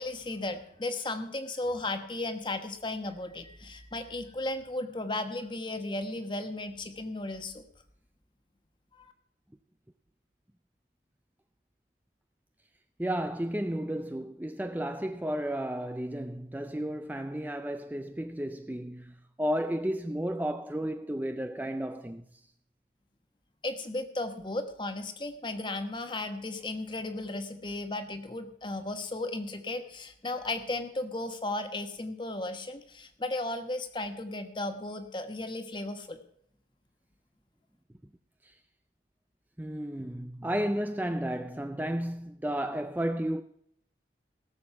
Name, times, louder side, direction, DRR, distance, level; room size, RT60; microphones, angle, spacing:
voice 1, 0.0-7.6 9.0-9.1 23.6-36.2, left 2 dB, 25° left, 1.2 m, -35 dB
voice 2, 13.0-22.2 39.6-43.4, right 1 dB, 10° right, 0.4 m, -33 dB
18.0 x 7.4 x 5.9 m
head